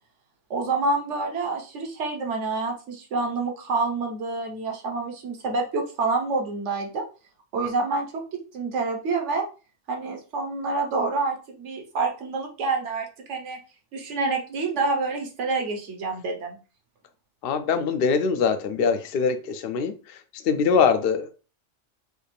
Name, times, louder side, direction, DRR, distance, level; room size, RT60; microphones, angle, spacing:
voice 1, 0.5-7.0 7.5-8.2 8.5-9.5 9.9-13.6 13.9-16.6, right 3 dB, 70° right, 2 dB, 1.4 m, -27 dB
voice 2, 17.4-21.3, left 5 dB, 60° left, 8 dB, 0.7 m, -23 dB
6.3 x 2.4 x 3.4 m, 0.35 s
omnidirectional pair, 1.3 m